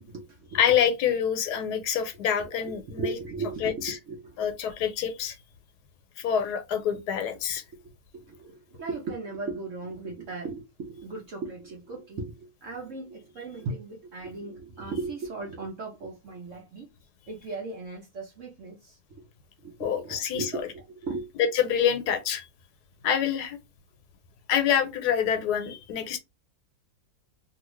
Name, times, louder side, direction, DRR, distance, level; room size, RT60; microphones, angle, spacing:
voice 1, 0.0-0.6 2.4-4.4 4.6-4.7 8.1-16.9 17.3-19.0 19.6-21.3, right 3 dB, 60° right, 1.0 m, -37 dB
voice 2, 0.5-3.2 3.6-4.0 4.4-5.3 6.2-7.6 19.8-20.5 21.4-22.4 23.0-23.6 24.5-26.2, left 8 dB, 85° left, 1.2 m, -26 dB
2.7 x 2.7 x 3.0 m
omnidirectional pair, 1.7 m